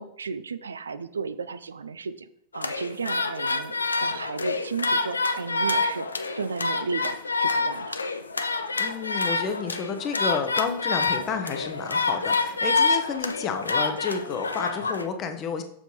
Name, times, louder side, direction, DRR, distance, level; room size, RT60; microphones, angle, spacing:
voice 1, 0.0-2.3 2.5-3.7 4.0-6.1 6.4-8.0, right 5 dB, 70° right, 13 dB, 0.3 m, -34 dB
sound 1, 2.5-15.1, left 3 dB, 75° left, 0.4 m, -27 dB
voice 2, 8.8-15.6, left 6 dB, 30° left, 7 dB, 0.9 m, -30 dB
7.2 x 6.6 x 3.2 m, 0.75 s
figure-of-eight pair, 90°, 0 cm